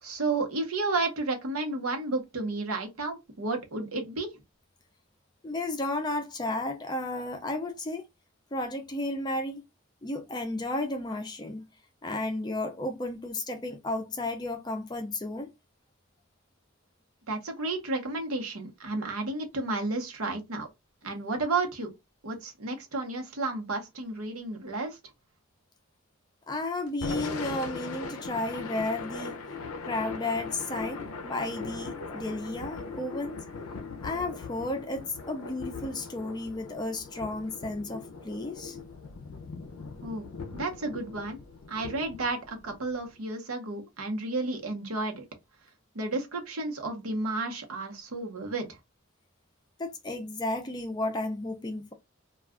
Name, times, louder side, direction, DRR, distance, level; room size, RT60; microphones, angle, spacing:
voice 1, 0.0-4.3 17.3-20.7 21.0-21.9 22.2-25.0 40.0-41.4 41.7-45.2 45.9-48.8, right 3 dB, 80° right, 0.9 m, -32 dB
voice 2, 5.4-8.0 8.5-9.6 10.0-11.6 12.0-15.5 26.5-29.4 29.8-33.4 34.0-38.8 49.8-51.9, left 2 dB, 20° left, 0.4 m, -33 dB
Thunder / Rain, 26.9-43.1, left 4 dB, 80° left, 0.5 m, -40 dB
2.3 x 2.3 x 3.5 m
head